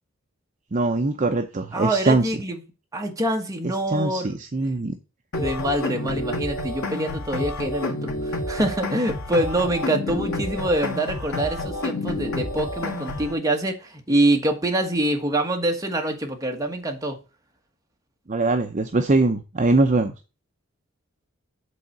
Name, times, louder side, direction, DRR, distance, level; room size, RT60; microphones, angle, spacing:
voice 1, 0.7-2.2 3.9-4.9 18.3-20.1, right 2 dB, 35° right, 6 dB, 0.6 m, -22 dB
voice 2, 1.7-2.6 2.9-4.4 5.4-17.2, right 1 dB, 15° right, 3 dB, 1.4 m, -25 dB
sound 1, 5.3-13.3, left 2 dB, 85° left, 1.6 m, -29 dB
8.4 x 3.9 x 6.6 m, 0.31 s
head